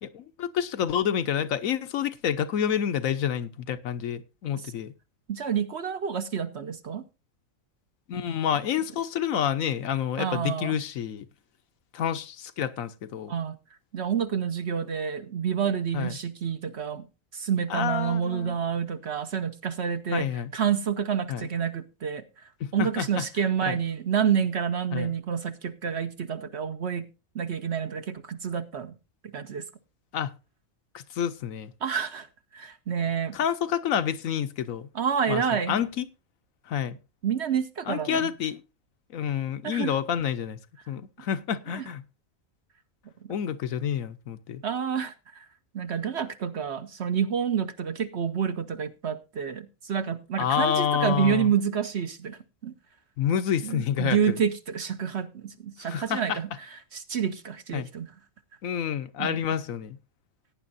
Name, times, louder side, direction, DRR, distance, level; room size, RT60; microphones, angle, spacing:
voice 1, 0.0-4.9 8.1-11.2 11.9-13.3 15.9-16.1 17.7-18.6 20.1-20.5 21.3-21.5 22.6-23.2 23.6-23.7 24.9-25.1 30.1-30.3 30.9-31.7 33.3-34.9 35.3-35.4 35.7-36.1 36.7-37.0 37.9-38.6 39.1-40.6 40.9-42.0 43.3-44.6 50.4-51.5 53.2-54.4 55.9-56.4 57.7-57.9 58.6-60.0, left 9 dB, 75° left, 1.2 m, -28 dB
voice 2, 5.3-7.0 10.2-10.8 13.3-13.6 13.9-17.1 17.3-27.1 27.3-28.9 29.2-29.7 31.8-32.3 32.5-33.4 34.9-35.8 37.2-38.3 39.6-39.9 41.7-41.8 43.2-43.3 44.6-45.5 45.7-52.8 53.6-58.1 59.2-59.4, right 7 dB, 55° right, 1.0 m, -29 dB
17.5 x 9.7 x 2.6 m
omnidirectional pair, 1.4 m